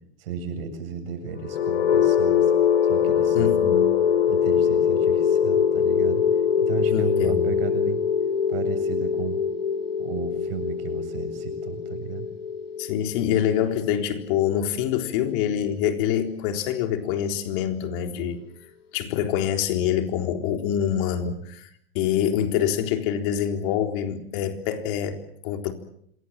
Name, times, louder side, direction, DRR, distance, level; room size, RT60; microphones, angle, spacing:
voice 1, 0.2-2.5 2.8-3.5 4.3-6.2 6.6-8.0 8.5-9.4 10.0-12.3, right 7 dB, 75° right, 8 dB, 7.7 m, -34 dB
sound 1, 1.4-15.3, left 7 dB, 90° left, 2.4 m, -23 dB
voice 2, 3.3-3.9 6.9-7.5 12.8-18.4 18.9-25.7, left 9 dB, 60° left, 6 dB, 3.9 m, -25 dB
27.0 x 22.5 x 7.5 m, 0.70 s
hypercardioid pair, 115°, 30 cm